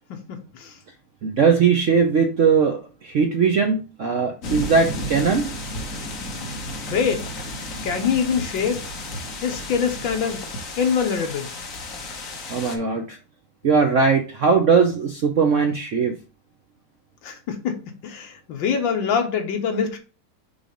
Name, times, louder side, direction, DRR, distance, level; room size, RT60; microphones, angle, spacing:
voice 1, 0.1-0.7 6.9-7.2 7.8-8.9 9.4-10.4 10.8-11.5 17.2-20.0, left 6 dB, 75° left, 1.7 m, -24 dB
voice 2, 1.2-5.5 12.5-13.2 13.6-16.1, right 5 dB, 60° right, 0.8 m, -19 dB
sound 1, 4.4-12.8, left 1 dB, 50° left, 1.4 m, -33 dB
6.1 x 3.3 x 5.0 m
omnidirectional pair, 2.1 m